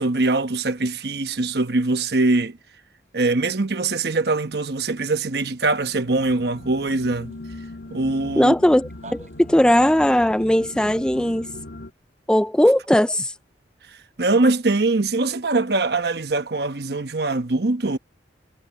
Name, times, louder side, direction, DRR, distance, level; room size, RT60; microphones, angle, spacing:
voice 1, 0.0-2.6 3.1-7.3 7.9-8.5 14.2-18.0, right 2 dB, 60° right, 1.1 m, -22 dB
sound 1, 3.1-10.7, right 3 dB, 40° right, 5.6 m, -50 dB
sound 2, 5.8-11.9, left 1 dB, 70° left, 2.5 m, -39 dB
voice 2, 8.4-11.5 12.3-13.3, left 1 dB, 5° left, 0.4 m, -18 dB
head